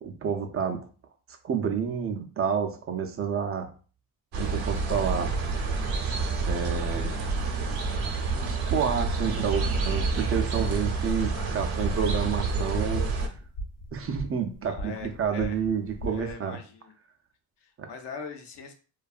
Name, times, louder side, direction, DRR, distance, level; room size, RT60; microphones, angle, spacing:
voice 1, 0.0-0.8 1.4-3.7 4.4-5.3 6.4-7.1 8.5-13.0 13.9-16.6 17.8-17.9, right 7 dB, 30° right, 4 dB, 0.4 m, -29 dB
sound 1, 4.3-13.3, right 4 dB, 55° right, 0.7 m, -28 dB
sound 2, 4.5-16.3, equal, 85° left, 0.9 m, -42 dB
voice 2, 14.6-15.6 16.1-16.9 17.6-18.7, left 5 dB, 60° left, 5 dB, 0.6 m, -41 dB
2.6 x 2.3 x 2.3 m, 0.38 s
cardioid pair, 90°, 46 cm